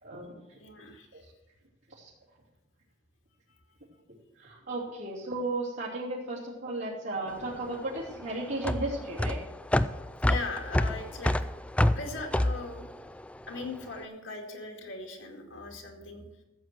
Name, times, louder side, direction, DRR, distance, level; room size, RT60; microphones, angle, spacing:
voice 1, 0.0-0.3 1.1-1.2 2.0-2.1 4.4-9.4, right 2 dB, 75° right, -8 dB, 3.0 m, -35 dB
voice 2, 0.6-1.2 3.5-3.6 10.2-11.4 11.9-12.8 13.5-16.2, left 3 dB, 75° left, 2 dB, 2.4 m, -39 dB
sound 1, 7.3-13.8, left 1 dB, 5° left, 0.3 m, -28 dB
14.5 x 7.8 x 6.1 m, 1.0 s
head